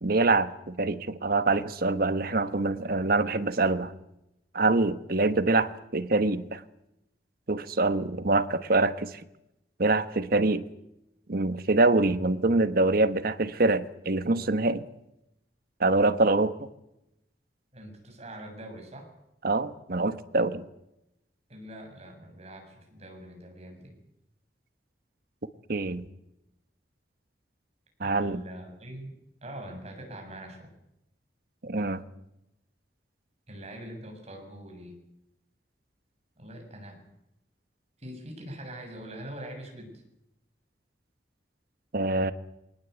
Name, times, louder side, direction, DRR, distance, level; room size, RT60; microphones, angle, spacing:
voice 1, 0.0-3.9 4.5-6.6 7.5-9.2 9.8-10.6 11.3-14.8 15.8-16.7 19.4-20.6 25.7-26.0 28.0-28.4 31.6-32.0 41.9-42.3, right 2 dB, 55° right, 12 dB, 1.3 m, -25 dB
voice 2, 17.7-19.1 21.5-24.0 28.0-29.1 29.4-30.8 33.5-35.0 36.4-37.0 38.0-40.0, right 1 dB, 40° right, 2 dB, 7.1 m, -43 dB
22.5 x 19.5 x 8.3 m, 0.87 s
head